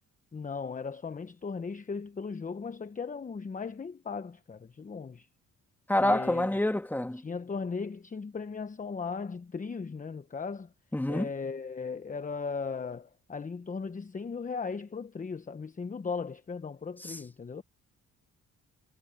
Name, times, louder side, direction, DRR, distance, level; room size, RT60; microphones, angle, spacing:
voice 1, 0.3-5.3 6.0-6.5 7.2-10.7 11.1-17.6, left 5 dB, 25° left, 1.0 m, -37 dB
voice 2, 5.9-7.2 10.9-11.3 17.0-17.2, left 1 dB, 5° left, 2.5 m, -27 dB
cardioid pair, 90°, 30 cm